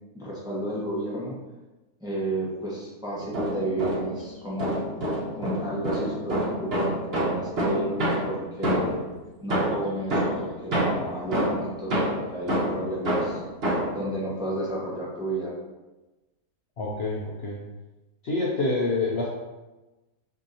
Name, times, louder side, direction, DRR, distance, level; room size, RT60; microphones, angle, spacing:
voice 1, 0.1-1.3 2.0-4.8 5.4-9.0 9.4-13.4 13.9-15.5, right 1 dB, 5° right, -6 dB, 0.8 m, -32 dB
sound 1, 3.2-4.2 4.6-9.1 9.5-14.0, right 1 dB, 45° right, 1.2 m, -27 dB
voice 2, 16.8-17.6 18.2-19.3, left 2 dB, 60° left, -3 dB, 0.8 m, -27 dB
6.2 x 2.8 x 2.7 m, 1.1 s
omnidirectional pair, 1.5 m